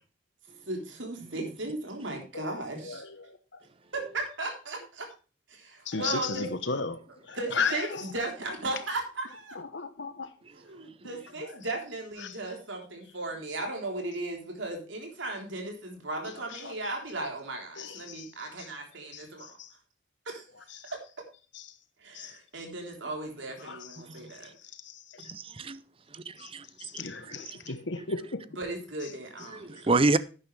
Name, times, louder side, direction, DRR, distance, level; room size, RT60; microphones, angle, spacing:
voice 1, 0.7-3.0 3.9-5.1 5.5-6.5 7.3-9.6 10.5-19.5 20.3-20.4 20.8-21.0 22.0-24.5 28.6-29.9, right 2 dB, 70° right, 3.6 m, -36 dB
voice 2, 2.8-3.3 5.9-7.0 7.3-8.0 9.7-10.3 12.2-12.3 16.6-16.7 17.8-18.2 19.1-19.2 22.1-22.3 23.6-23.8 25.2-25.3 26.8-28.4, left 4 dB, 65° left, 1.0 m, -34 dB
voice 3, 25.3-25.8 26.4-26.6 27.3-27.4 28.0-28.1 29.5-30.2, right 3 dB, 30° right, 0.5 m, -27 dB
12.0 x 9.4 x 3.3 m
head